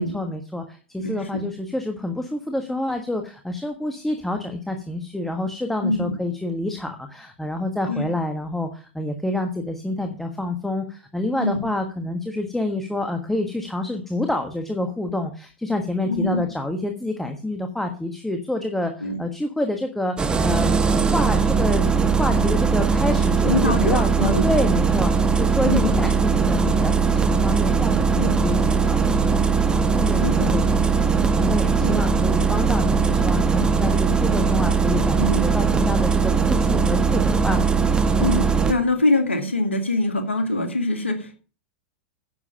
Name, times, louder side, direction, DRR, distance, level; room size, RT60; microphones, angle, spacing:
voice 1, 0.0-20.7 21.1-37.6, left 1 dB, 5° left, 4 dB, 1.4 m, -28 dB
voice 2, 1.0-1.4 5.8-6.2 7.9-8.1 11.4-11.7 16.1-16.4 19.0-19.2 23.5-24.5 25.6-26.0 28.2-28.4 30.2-30.6 31.8-32.0 35.2-35.5 38.2-41.4, left 2 dB, 80° left, 5 dB, 2.1 m, -24 dB
Engine starting, 20.2-38.7, right 5 dB, 15° right, 1.1 m, -20 dB
10.0 x 7.3 x 5.5 m, 0.37 s
figure-of-eight pair, 95°, 6 cm